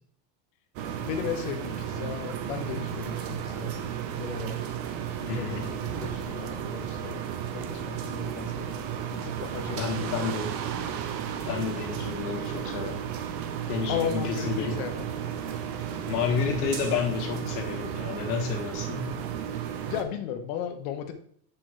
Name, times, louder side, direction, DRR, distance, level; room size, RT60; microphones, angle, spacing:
sound 1, 0.8-20.0, right 9 dB, 30° right, 0.6 m, -33 dB
voice 1, 1.0-3.9 4.2-4.6 5.2-7.2 7.5-8.7 9.1-10.0 10.3-10.4 13.9-15.1 19.9-21.1, left 8 dB, 50° left, 7 dB, 1.1 m, -35 dB
voice 2, 5.3-5.8 9.7-10.5 11.5-13.0 13.7-14.8 16.1-19.1, left 6 dB, 65° left, 3 dB, 1.8 m, -30 dB
6.9 x 6.1 x 3.2 m, 0.64 s
supercardioid pair, 150°, 50 cm